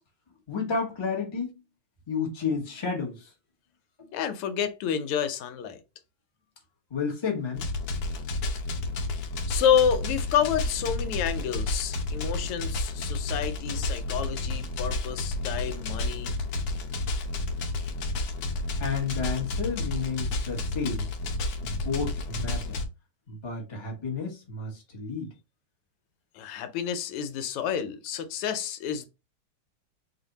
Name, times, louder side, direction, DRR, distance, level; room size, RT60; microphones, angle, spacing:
voice 1, 0.5-1.6 2.1-3.3 4.0-4.1 6.9-7.7 13.7-13.9 14.5-14.8 18.8-21.1 21.6-22.8 23.3-25.3, left 5 dB, 30° left, 0.5 m, -32 dB
voice 2, 4.1-5.8 9.5-16.3 26.3-29.1, left 8 dB, 90° left, 1.6 m, -29 dB
sound 1, 7.5-22.8, left 2 dB, 65° left, 1.1 m, -31 dB
3.4 x 2.5 x 3.9 m
omnidirectional pair, 2.4 m